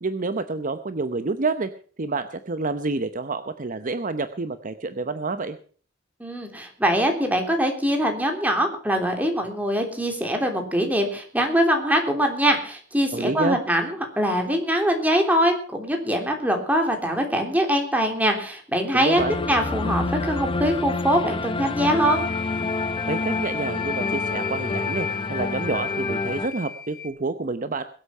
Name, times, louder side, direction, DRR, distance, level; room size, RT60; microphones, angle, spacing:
voice 1, 0.0-1.7 2.0-5.6 13.1-13.6 18.9-19.4 23.1-27.8, right 3 dB, 45° right, 10 dB, 0.8 m, -28 dB
voice 2, 6.2-22.2, equal, 10° right, 3 dB, 3.3 m, -23 dB
sound 1, 19.2-26.5, left 3 dB, 25° left, 0.8 m, -28 dB
sound 2, 22.0-27.1, left 5 dB, 55° left, 3.7 m, -33 dB
22.0 x 8.3 x 5.6 m, 0.43 s
head